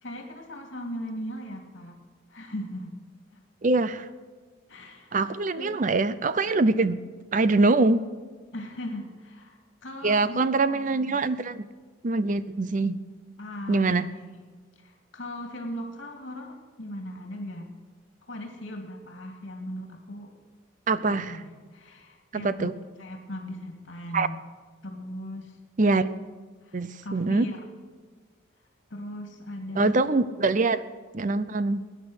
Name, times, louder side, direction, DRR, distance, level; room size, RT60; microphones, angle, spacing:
voice 1, 0.0-2.0 2.3-2.9 3.3-3.4 4.7-5.3 5.6-5.8 8.5-11.2 13.4-14.5 14.8-17.7 18.3-20.4 21.1-22.7 23.0-24.4 24.8-25.6 26.6-27.6 28.9-29.9, left 1 dB, 75° left, 3 dB, 2.2 m, -38 dB
voice 2, 3.6-4.1 5.1-7.0 7.3-8.0 10.0-11.7 12.0-13.0 13.7-14.1 20.9-21.4 22.3-22.7 24.1-24.3 25.8-26.1 26.7-27.5 29.8-30.8 31.1-31.8, right 3 dB, 40° right, 15 dB, 0.6 m, -24 dB
18.5 x 10.0 x 6.4 m, 1.5 s
head